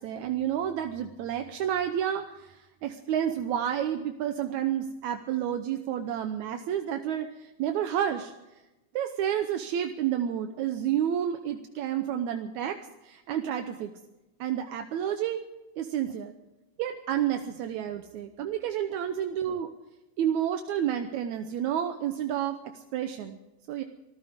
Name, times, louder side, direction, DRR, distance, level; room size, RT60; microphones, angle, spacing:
voice 1, 0.0-8.3 8.9-13.9 14.4-15.4 15.8-16.3 16.8-19.7 20.2-23.4 23.7-23.8, right 10 dB, 80° right, 6 dB, 2.3 m, -30 dB
25.0 x 15.0 x 3.6 m, 0.98 s
omnidirectional pair, 3.3 m